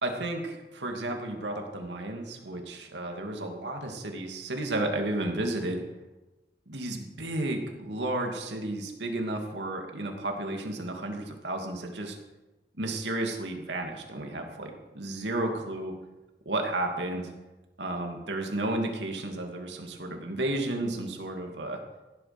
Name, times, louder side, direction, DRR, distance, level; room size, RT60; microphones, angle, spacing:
voice 1, 0.0-5.8 6.7-12.2 12.8-15.9 16.5-17.3 17.8-21.8, right 2 dB, 90° right, 3 dB, 2.7 m, -32 dB
16.5 x 11.0 x 6.1 m, 1.1 s
head